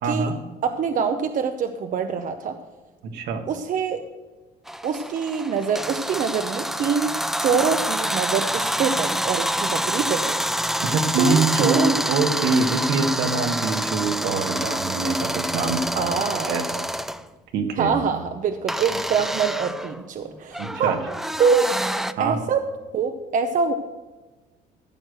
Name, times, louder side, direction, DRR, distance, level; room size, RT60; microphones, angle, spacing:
voice 1, 0.0-0.4 3.0-3.5 10.8-16.1 16.5-16.8 17.5-18.0 20.6-21.1 22.2-22.4, right 4 dB, 75° right, 5 dB, 1.6 m, -24 dB
voice 2, 0.6-2.5 3.5-4.0 4.8-10.4 11.2-12.0 16.0-16.6 17.8-21.0 21.4-21.7 22.2-22.6 22.9-23.7, right 6 dB, 50° right, 7 dB, 0.8 m, -24 dB
sound 1, 4.7-17.2 18.7-22.1, equal, ahead, 0.4 m, -27 dB
14.5 x 6.4 x 6.4 m, 1.2 s
cardioid pair, 110°, 17 cm